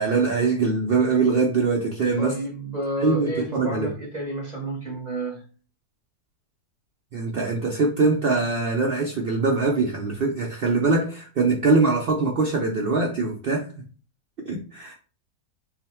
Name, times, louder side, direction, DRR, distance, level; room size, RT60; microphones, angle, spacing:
voice 1, 0.0-2.4 3.0-3.9 7.1-13.8 14.4-14.9, right 3 dB, 85° right, 0.5 m, -23 dB
voice 2, 2.2-5.4, right 1 dB, 35° right, 0.8 m, -30 dB
3.9 x 2.1 x 4.2 m
omnidirectional pair, 1.7 m